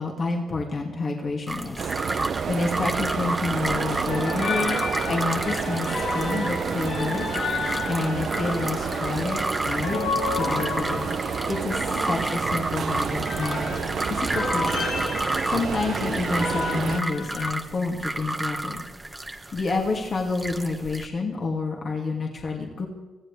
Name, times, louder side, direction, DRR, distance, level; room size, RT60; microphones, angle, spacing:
voice 1, 0.0-1.9 2.5-7.3 7.8-11.2 11.5-13.6 13.8-14.9 15.5-18.8 19.5-22.9, left 3 dB, 45° left, 0 dB, 2.5 m, -29 dB
sound 1, 1.5-21.1, right 2 dB, 15° right, 1.3 m, -32 dB
sound 2, 1.8-17.0, right 7 dB, 55° right, 0.6 m, -30 dB
sound 3, 4.1-17.5, left 4 dB, 75° left, 3.3 m, -32 dB
24.5 x 16.0 x 3.5 m, 1.2 s
cardioid pair, 90°, 0 cm